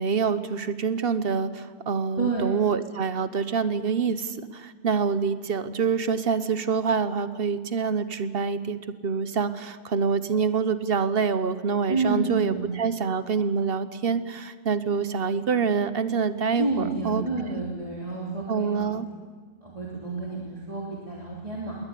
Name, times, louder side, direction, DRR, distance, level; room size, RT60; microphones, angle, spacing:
voice 1, 0.0-17.5 18.5-19.1, right 5 dB, 50° right, 12 dB, 1.1 m, -26 dB
voice 2, 11.9-12.8 16.6-18.9 19.6-21.8, right 3 dB, 25° right, -3 dB, 3.0 m, -29 dB
21.5 x 18.5 x 8.4 m, 1.5 s
omnidirectional pair, 1.3 m